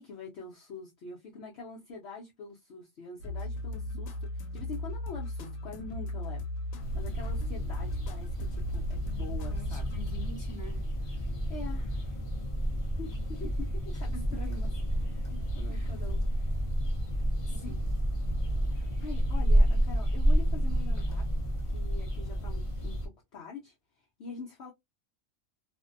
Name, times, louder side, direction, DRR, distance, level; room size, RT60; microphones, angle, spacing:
voice 1, 0.0-4.1 4.5-9.9 11.1-12.2 13.0-14.7 15.0-16.2 17.5-17.8 18.7-21.3 21.7-24.7, left 4 dB, 60° left, 0.8 m, -45 dB
sound 1, 3.2-10.3, left 1 dB, 90° left, 1.0 m, -37 dB
sound 2, 6.8-23.1, equal, 40° left, 0.5 m, -30 dB
voice 2, 9.4-10.9 13.9-14.5 15.7-16.1 17.5-18.0, equal, 25° right, 0.4 m, -47 dB
2.6 x 2.1 x 2.4 m
omnidirectional pair, 1.4 m